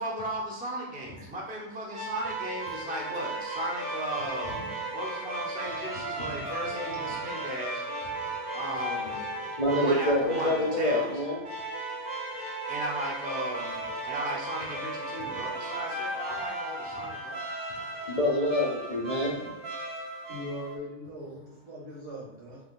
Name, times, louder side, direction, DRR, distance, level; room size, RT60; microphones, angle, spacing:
voice 1, 0.0-7.8 8.5-9.2 9.7-11.1 12.7-17.4, right 1 dB, 10° right, -3 dB, 0.4 m, -36 dB
sound 1, 1.9-20.8, right 2 dB, 55° right, 0.8 m, -36 dB
voice 2, 8.2-8.6 9.5-11.4 16.9-17.2 17.7-19.3, left 1 dB, 40° left, -5 dB, 0.6 m, -28 dB
voice 3, 20.3-22.6, equal, 80° right, -5 dB, 1.6 m, -40 dB
3.6 x 2.8 x 2.4 m, 1.0 s
omnidirectional pair, 1.3 m